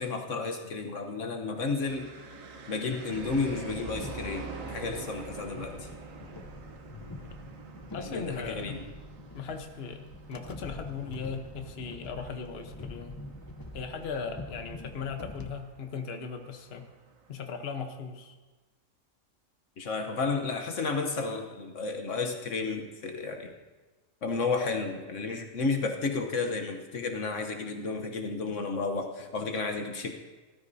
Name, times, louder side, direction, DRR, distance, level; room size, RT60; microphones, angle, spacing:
voice 1, 0.0-2.1 2.7-5.9 8.0-8.8 19.8-23.5 24.2-30.1, left 4 dB, 65° left, 4 dB, 1.3 m, -32 dB
sound 1, 1.9-17.3, right 3 dB, 75° right, 1.5 m, -46 dB
sound 2, 3.1-15.5, left 2 dB, 30° left, 0.4 m, -45 dB
voice 2, 7.9-8.8 9.3-13.2 13.7-16.9 17.3-18.3, left 5 dB, 50° left, 5 dB, 1.2 m, -38 dB
19.0 x 13.0 x 2.7 m, 1.2 s
omnidirectional pair, 1.4 m